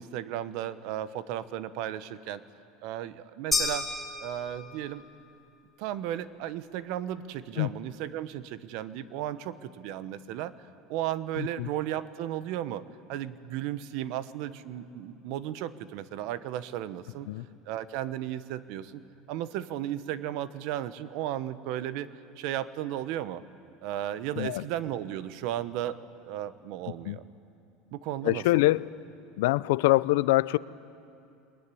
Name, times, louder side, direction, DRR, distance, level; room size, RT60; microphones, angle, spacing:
voice 1, 0.0-2.4 2.8-3.9 4.2-5.0 5.8-10.5 10.9-12.8 13.1-17.3 17.7-19.0 19.3-23.4 23.8-27.2 27.9-28.6, right 12 dB, 65° right, 14 dB, 1.0 m, -35 dB
sound 1, 3.5-5.0, left 3 dB, ahead, 6.9 m, -31 dB
voice 2, 11.4-11.7 17.3-17.4 24.4-24.6 27.0-27.2 28.2-28.9 29.4-30.6, left 19 dB, 80° left, 18 dB, 0.5 m, -24 dB
24.0 x 21.0 x 9.9 m, 2.6 s
supercardioid pair, 135°, 0 cm